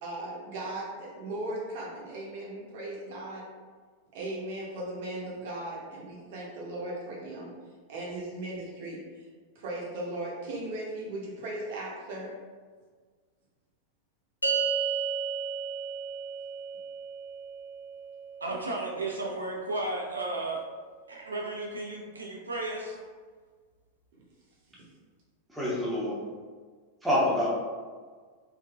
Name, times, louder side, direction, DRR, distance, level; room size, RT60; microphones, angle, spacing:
voice 1, 0.0-3.5 4.1-7.5 7.9-9.3 9.5-12.3 24.1-24.2, right 1 dB, 50° right, -4 dB, 0.9 m, -37 dB
sound 1, 14.4-21.0, right 5 dB, 80° left, 0.3 m, -35 dB
voice 2, 18.4-20.6 21.1-23.0, right 2 dB, 75° right, -2 dB, 0.6 m, -34 dB
voice 3, 25.5-26.2 27.0-27.5, left 1 dB, 5° right, -7 dB, 0.9 m, -26 dB
3.4 x 2.5 x 2.3 m, 1.5 s
figure-of-eight pair, 90°, 0 cm